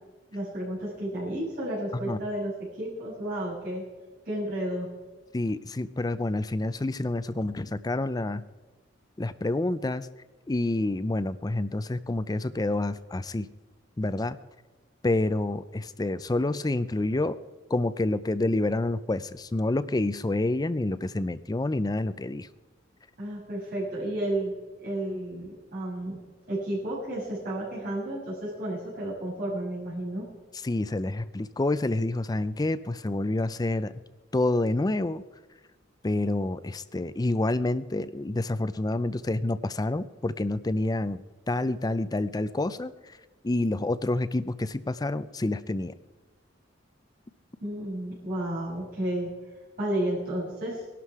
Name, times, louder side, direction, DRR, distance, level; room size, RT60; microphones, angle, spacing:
voice 1, 0.3-3.8 4.2-4.9 23.2-24.5 24.8-26.2 26.5-30.3 47.6-49.3 49.8-50.8, right 1 dB, 50° right, -9 dB, 6.8 m, -32 dB
voice 2, 5.3-8.4 9.2-10.1 10.5-13.5 14.0-14.4 15.0-17.4 17.7-22.5 30.6-33.9 34.3-35.2 36.0-41.2 41.5-42.9 43.4-45.9, left 2 dB, 20° left, 14 dB, 0.5 m, -28 dB
20.5 x 12.0 x 4.8 m, 1.2 s
head